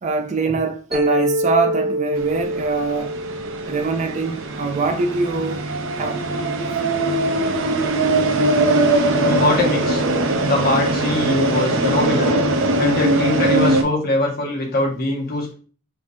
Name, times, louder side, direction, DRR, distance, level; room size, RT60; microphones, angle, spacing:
voice 1, 0.0-3.1 3.7-5.6 5.9-6.2, right 4 dB, 35° right, 0.4 m, -23 dB
Mallet percussion, 0.9-5.1, equal, ahead, 0.9 m, -26 dB
sound 1, 2.2-13.8, right 2 dB, 65° right, 0.7 m, -21 dB
voice 2, 9.2-10.0 10.4-12.4 12.8-15.5, left 2 dB, 50° left, 1.6 m, -22 dB
5.0 x 3.3 x 2.7 m
head